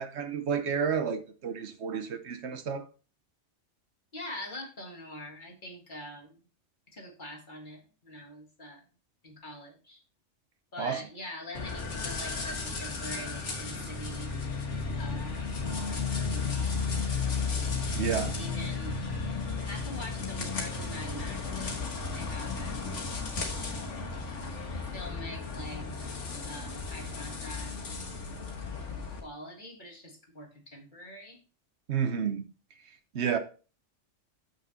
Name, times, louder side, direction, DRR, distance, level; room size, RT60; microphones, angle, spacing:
voice 1, 0.0-2.8 10.8-11.0 17.9-18.3 31.9-32.4 33.1-33.4, right 7 dB, 70° right, 1.1 m, -30 dB
voice 2, 4.1-6.4 6.9-8.8 9.2-10.0 10.7-14.3 15.0-16.8 18.4-19.0 19.6-21.8 22.1-23.0 24.9-25.9 26.4-27.8 29.2-31.4, left 1 dB, 40° left, 1.9 m, -44 dB
sound 1, 11.5-29.2, left 4 dB, 80° left, 1.8 m, -34 dB
7.1 x 6.2 x 4.0 m
omnidirectional pair, 1.2 m